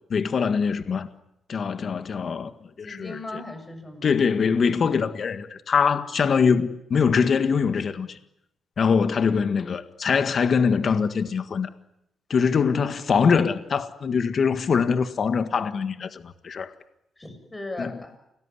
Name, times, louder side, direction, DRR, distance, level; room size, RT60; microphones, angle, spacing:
voice 1, 0.1-1.1 1.5-2.5 2.8-3.4 4.0-8.2 8.8-11.7 12.3-16.7 17.8-17.9, left 6 dB, 45° left, 1.6 m, -23 dB
voice 2, 2.8-4.1 17.2-18.1, left 2 dB, 15° left, 6.9 m, -37 dB
29.0 x 19.5 x 9.9 m
cardioid pair, 130°, 0 cm